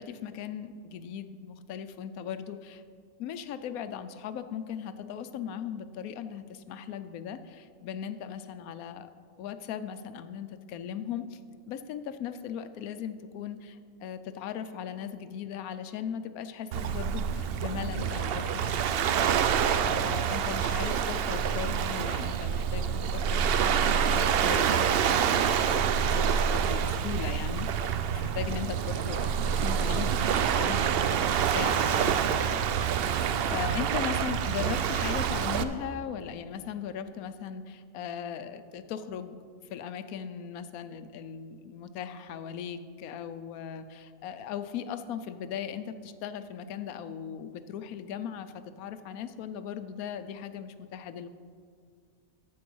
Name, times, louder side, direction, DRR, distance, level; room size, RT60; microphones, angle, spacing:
voice 1, 0.0-2.8 3.2-9.1 9.4-11.4 11.7-33.0 33.4-39.4 39.7-51.3, left 8 dB, 80° left, 11 dB, 1.1 m, -38 dB
Waves surf, 16.7-35.6, right 8 dB, 75° right, 0.5 m, -27 dB
14.0 x 4.7 x 6.1 m, 2.1 s
omnidirectional pair, 1.5 m